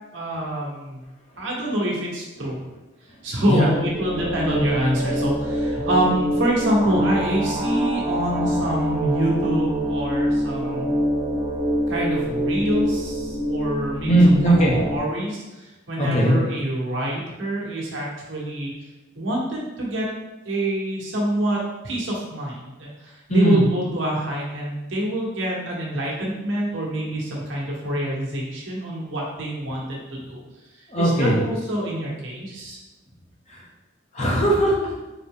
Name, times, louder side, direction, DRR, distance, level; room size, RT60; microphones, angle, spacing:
voice 1, 0.1-1.0 1.4-2.6 3.2-10.9 11.9-14.1 14.9-18.7 19.2-20.1 20.4-30.4 30.8-32.8, right 1 dB, 75° right, -4 dB, 1.1 m, -26 dB
sound 1, 3.4-15.0, equal, 10° right, 0.5 m, -25 dB
voice 2, 14.1-14.8 16.0-16.4 23.3-23.6 30.2-30.3 30.9-31.4 33.5-33.6 34.1-34.9, right 1 dB, 35° left, -4 dB, 1.0 m, -18 dB
4.0 x 3.1 x 3.6 m, 1.1 s
head